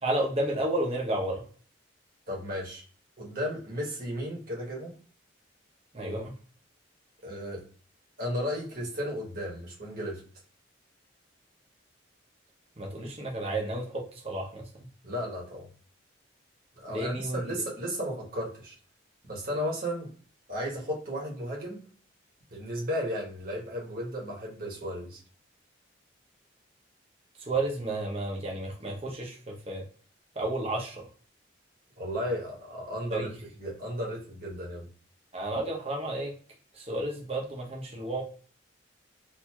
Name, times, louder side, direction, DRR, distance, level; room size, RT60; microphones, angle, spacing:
voice 1, 0.0-1.4 5.9-6.3 12.8-14.7 16.9-17.5 27.4-29.8 30.4-31.0 33.1-33.3 35.3-36.3 36.7-38.2, right 1 dB, 30° right, -1 dB, 0.7 m, -32 dB
voice 2, 2.3-2.8 3.2-5.0 7.2-7.6 8.2-10.2 15.0-15.7 16.8-18.7 19.3-20.1 20.5-21.8 22.5-25.2 32.0-33.3 33.6-34.9, equal, 45° right, -3 dB, 1.1 m, -34 dB
4.3 x 2.7 x 2.3 m, 0.43 s
head